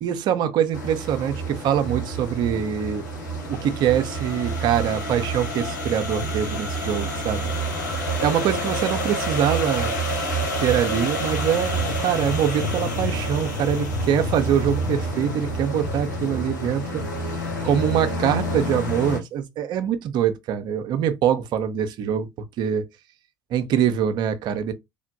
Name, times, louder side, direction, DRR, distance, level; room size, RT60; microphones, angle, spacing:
voice 1, 0.0-3.0 3.5-7.5 8.2-10.0 10.6-17.0 17.3-22.3 22.6-22.9 23.5-24.7, right 9 dB, 50° right, 0.5 m, -24 dB
sound 1, 0.7-19.2, equal, 80° left, 1.0 m, -28 dB
3.2 x 2.1 x 2.7 m
figure-of-eight pair, 60°, 10 cm